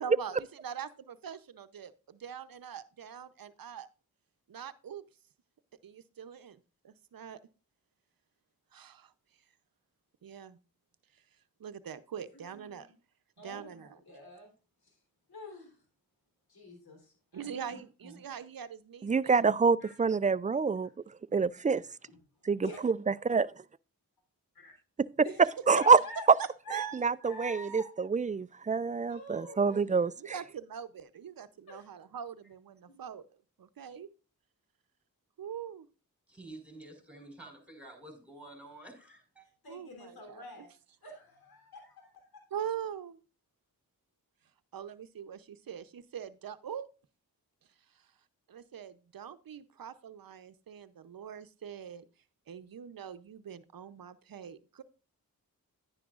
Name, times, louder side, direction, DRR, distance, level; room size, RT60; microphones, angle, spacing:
voice 1, 0.0-3.9 4.5-5.0 5.8-6.6 6.8-7.4 8.7-9.1 10.2-10.6 11.6-12.9 13.4-13.9 17.3-19.4 26.4-27.0 30.2-33.2 33.6-34.1 35.4-35.9 39.7-40.6 42.5-43.2 44.7-46.9 48.5-52.0 52.5-54.8, right 8 dB, 70° right, 0.8 m, -43 dB
voice 2, 12.3-12.8 13.4-14.5 15.3-15.8 16.5-18.2 19.8-20.0 22.1-22.2 22.6-22.8 24.6-24.7 25.2-25.4 25.7-26.2 26.7-26.9 27.2-27.9 29.1-29.9 31.7-31.9 32.9-33.0 39.6-40.7 41.0-42.4, left 2 dB, 85° left, 3.5 m, -47 dB
voice 3, 19.0-20.9 21.3-21.8 22.5-23.5 25.7-26.0 26.9-30.3, right 5 dB, 20° right, 0.3 m, -26 dB
voice 4, 36.3-39.5, right 2 dB, 5° right, 5.2 m, -50 dB
10.5 x 10.0 x 2.4 m
cardioid pair, 55°, 36 cm